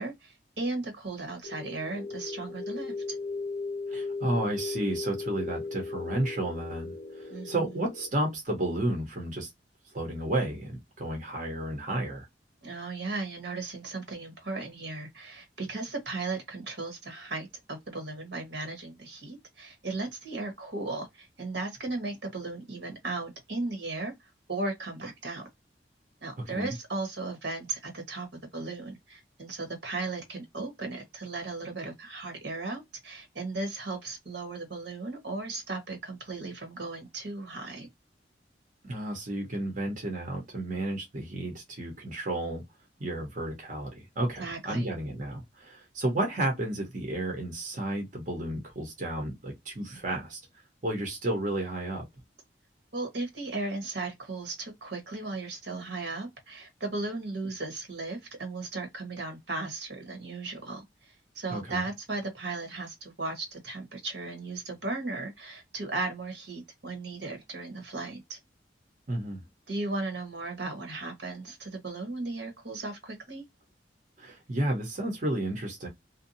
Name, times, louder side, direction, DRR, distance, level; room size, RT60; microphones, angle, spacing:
voice 1, 0.0-3.2 7.3-7.7 12.6-25.4 26.2-28.3 28.5-37.9 44.4-44.9 52.9-68.4 69.7-73.4, right 3 dB, 75° right, 1.2 m, -36 dB
sound 1, 1.4-8.1, left 3 dB, 80° left, 0.6 m, -37 dB
voice 2, 3.9-9.5 9.9-12.3 26.4-26.7 38.8-42.6 43.0-50.4 50.8-52.0 61.5-61.8 69.1-69.4 74.2-75.9, right 1 dB, 45° right, 0.9 m, -32 dB
2.6 x 2.2 x 2.6 m
head